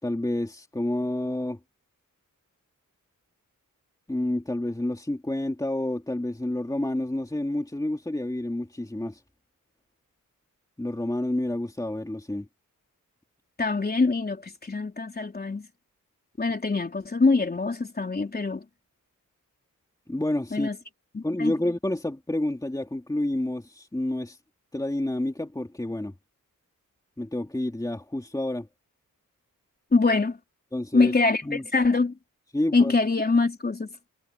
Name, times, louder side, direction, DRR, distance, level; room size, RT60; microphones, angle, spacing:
voice 1, 0.0-1.6 4.1-9.2 10.8-12.5 20.1-20.7 21.2-24.4 24.7-26.1 27.2-28.7 30.7-31.1 31.4-31.6 32.5-33.0, left 1 dB, 10° left, 2.7 m, -29 dB
voice 2, 13.6-15.7 16.4-18.7 20.5-20.8 21.1-21.5 29.9-30.4 30.9-32.2 32.7-33.9, left 3 dB, 30° left, 3.6 m, -24 dB
wide cardioid pair, 140°, 33 cm